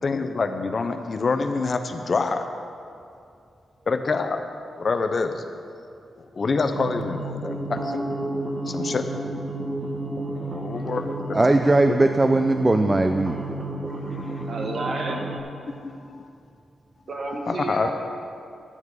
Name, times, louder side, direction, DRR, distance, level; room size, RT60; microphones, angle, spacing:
voice 1, 0.0-2.4 3.9-4.4 4.8-5.4 6.4-8.1 8.7-9.1 10.4-12.0 14.1-14.5 15.7-16.3 17.5-17.9, left 4 dB, 45° left, 7 dB, 0.6 m, -27 dB
sound 1, 6.7-15.4, right 2 dB, 35° right, 1.0 m, -31 dB
voice 2, 11.3-13.4, right 2 dB, 20° right, 6 dB, 0.4 m, -19 dB
voice 3, 14.5-15.3 17.1-17.9, right 2 dB, 60° right, 1 dB, 1.4 m, -31 dB
11.0 x 7.3 x 4.8 m, 2.4 s
cardioid pair, 90°, 0 cm